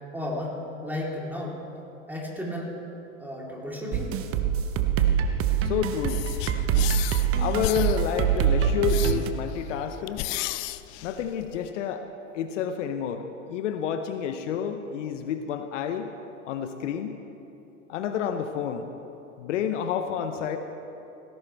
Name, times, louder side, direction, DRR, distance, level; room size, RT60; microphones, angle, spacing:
voice 1, 0.1-0.5 0.8-1.6 2.1-2.7 3.2-4.1, left 1 dB, 5° right, -3 dB, 3.7 m, -33 dB
sound 1, 3.9-9.3, right 9 dB, 35° right, 1.1 m, -24 dB
voice 2, 5.6-6.2 7.4-10.3 11.0-12.0 12.3-16.1 16.5-17.2 17.9-18.9 19.4-20.6, left 8 dB, 65° left, 8 dB, 1.0 m, -29 dB
sound 2, 6.1-11.7, left 17 dB, 40° left, 0.5 m, -34 dB
18.0 x 16.5 x 3.5 m, 2.9 s
hypercardioid pair, 90°, 39 cm